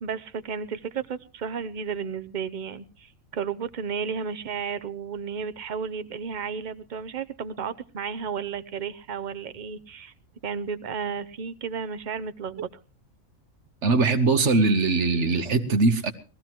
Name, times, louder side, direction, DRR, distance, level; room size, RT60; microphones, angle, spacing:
voice 1, 0.0-10.1 10.4-12.7, right 6 dB, 40° right, 0.8 m, -33 dB
voice 2, 13.8-16.1, right 3 dB, 60° right, 1.5 m, -21 dB
21.5 x 15.0 x 3.0 m
omnidirectional pair, 1.4 m